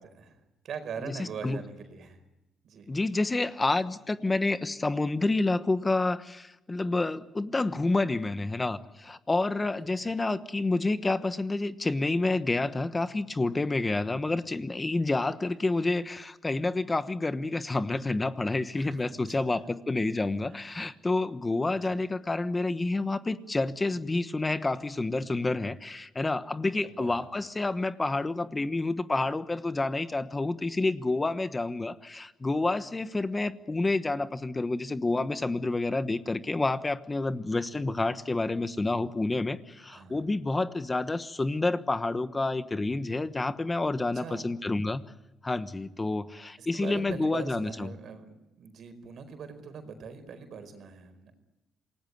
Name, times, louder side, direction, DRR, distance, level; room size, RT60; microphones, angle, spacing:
voice 1, 0.0-2.2 2.6-2.9 10.0-10.2 18.7-19.6 20.5-20.7 21.7-22.0 26.8-27.2 39.9-40.3 44.1-44.5 46.6-51.3, right 6 dB, 65° right, 9 dB, 4.8 m, -42 dB
voice 2, 1.0-1.6 2.9-45.0 45.4-47.9, left 2 dB, 20° left, 11 dB, 1.2 m, -29 dB
27.5 x 19.0 x 9.5 m, 0.96 s
cardioid pair, 90°, 0 cm